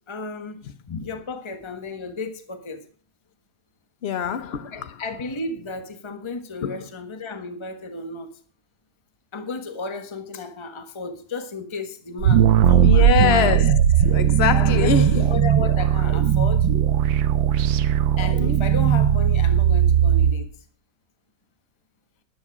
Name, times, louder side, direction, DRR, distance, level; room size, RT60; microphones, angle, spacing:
voice 1, 0.1-2.8 4.7-8.3 9.3-13.1 14.5-16.7 17.6-17.7 18.2-20.5, left 3 dB, 15° left, 1.4 m, -33 dB
voice 2, 4.0-5.0 6.6-6.9 12.8-15.3 18.4-18.6, left 7 dB, 60° left, 0.6 m, -24 dB
sound 1, 12.2-20.3, right 9 dB, 85° right, 1.7 m, -18 dB
13.0 x 10.5 x 4.8 m
omnidirectional pair, 2.1 m